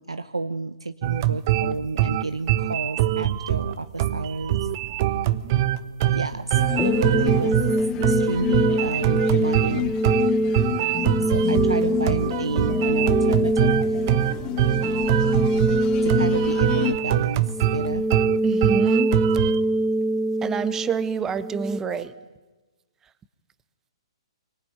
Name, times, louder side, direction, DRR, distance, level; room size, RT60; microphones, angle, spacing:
voice 1, 0.0-4.7 6.1-7.6 8.0-10.0 11.2-14.1 16.0-18.1 21.8-22.3, right 3 dB, 90° right, 10 dB, 0.9 m, -30 dB
sound 1, 1.0-19.6, right 13 dB, 45° right, 1.2 m, -24 dB
sound 2, 6.5-16.9, left 14 dB, 25° left, 0.8 m, -30 dB
sound 3, 6.8-21.8, right 1 dB, ahead, 1.3 m, -24 dB
voice 2, 18.4-19.1 20.4-22.1, right 7 dB, 15° right, 14 dB, 1.3 m, -26 dB
26.0 x 24.5 x 9.4 m, 1.2 s
figure-of-eight pair, 120°, 3 cm